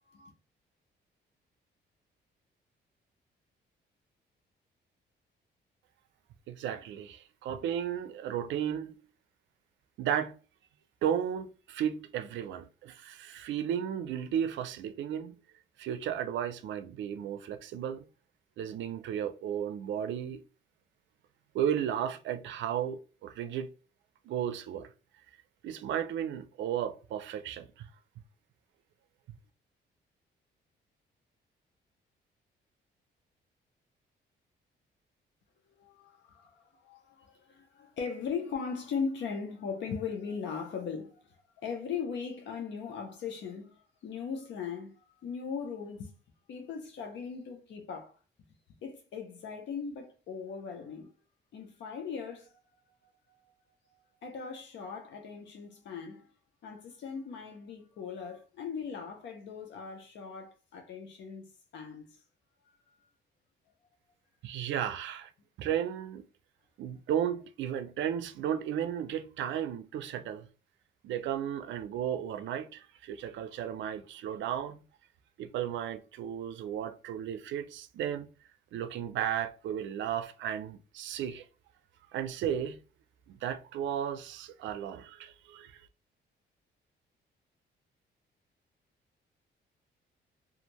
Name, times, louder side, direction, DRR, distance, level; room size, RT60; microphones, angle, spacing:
voice 1, 6.5-8.9 10.0-10.3 11.0-15.4 15.8-18.1 18.6-20.4 21.5-23.7 24.3-24.9 25.6-27.9 64.4-65.3 65.6-66.2 66.8-70.5 71.0-74.8 75.4-78.3 78.7-81.4 82.1-82.8 83.3-85.8, right 9 dB, 75° right, 0.4 m, -34 dB
voice 2, 35.8-46.1 46.5-48.2 48.8-51.1 51.5-52.5 53.3-53.4 53.9-56.3 56.6-62.2 62.9-63.0, left 6 dB, 70° left, 0.7 m, -39 dB
2.6 x 2.5 x 2.9 m
cardioid pair, 100°, 19 cm